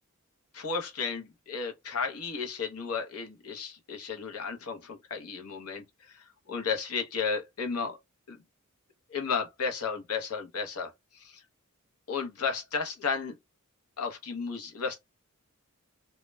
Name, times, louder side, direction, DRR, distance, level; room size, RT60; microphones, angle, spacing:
voice 1, 0.5-8.0 8.3-8.4 9.1-11.4 12.1-13.4 14.0-15.0, left 5 dB, 90° left, 0.7 m, -33 dB
2.2 x 2.1 x 3.1 m
head